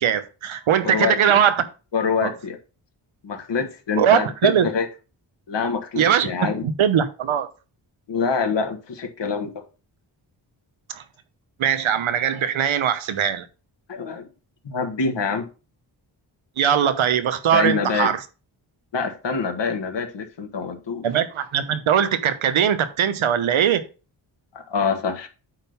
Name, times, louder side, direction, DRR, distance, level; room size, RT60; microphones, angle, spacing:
voice 1, 0.0-1.6 2.2-2.3 4.0-4.7 6.0-6.3 6.6-7.5 10.9-11.0 11.6-13.5 16.6-18.2 21.0-23.8, right 9 dB, 90° right, 1.0 m, -20 dB
voice 2, 0.8-1.4 1.9-2.6 3.2-4.9 5.5-6.6 8.1-9.6 13.9-14.3 14.6-15.5 17.5-18.2 18.9-21.1 24.5-25.3, left 5 dB, 65° left, 1.7 m, -25 dB
8.8 x 3.8 x 5.5 m
wide cardioid pair, 100°, 46 cm